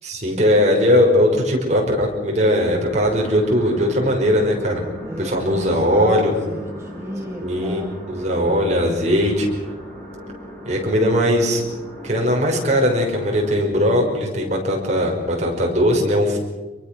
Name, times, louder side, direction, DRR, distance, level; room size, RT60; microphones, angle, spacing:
voice 1, 0.0-4.8 5.2-6.3 7.4-7.8 8.1-9.5 10.7-11.6 12.0-16.4, equal, 40° right, 0 dB, 5.7 m, -19 dB
sound 1, 2.9-13.5, equal, 10° left, 7.2 m, -37 dB
voice 2, 5.0-7.9, right 1 dB, 15° right, 1 dB, 1.7 m, -33 dB
26.5 x 23.0 x 6.3 m, 1.2 s
head